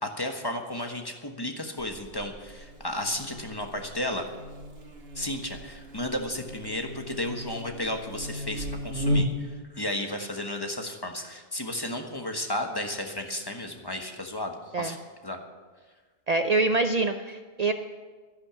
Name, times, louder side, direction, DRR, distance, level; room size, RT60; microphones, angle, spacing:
voice 1, 0.0-4.3 5.1-15.0 15.2-15.4, left 1 dB, 25° left, 3 dB, 1.3 m, -33 dB
Buzz, 1.8-9.6, equal, 80° right, 1.7 m, -35 dB
voice 2, 16.3-17.7, right 3 dB, 50° right, 8 dB, 0.6 m, -25 dB
12.0 x 11.0 x 7.0 m, 1.4 s
omnidirectional pair, 1.0 m